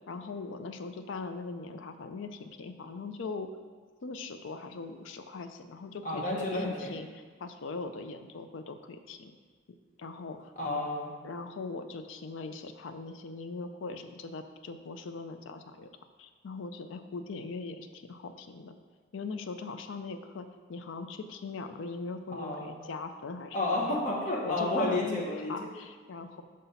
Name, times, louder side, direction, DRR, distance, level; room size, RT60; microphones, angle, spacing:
voice 1, 0.1-3.5 4.0-9.3 10.0-10.5 11.2-15.9 16.2-18.8 19.1-23.6 23.9-24.0 24.4-26.4, left 4 dB, 65° left, 8 dB, 0.4 m, -40 dB
voice 2, 6.0-6.9 10.6-11.1 22.3-22.7 23.5-25.6, left 2 dB, 40° left, -3 dB, 1.1 m, -31 dB
5.0 x 4.0 x 5.5 m, 1.5 s
head